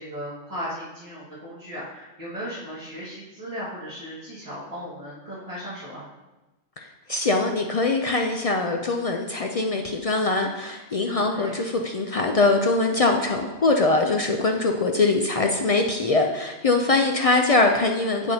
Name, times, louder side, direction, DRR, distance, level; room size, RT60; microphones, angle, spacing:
voice 1, 0.0-6.1 11.1-11.5 16.8-17.0, equal, 30° right, -11 dB, 1.7 m, -36 dB
voice 2, 6.8-18.3, left 3 dB, 55° left, 3 dB, 0.4 m, -22 dB
8.3 x 7.0 x 2.7 m, 1.1 s
omnidirectional pair, 1.2 m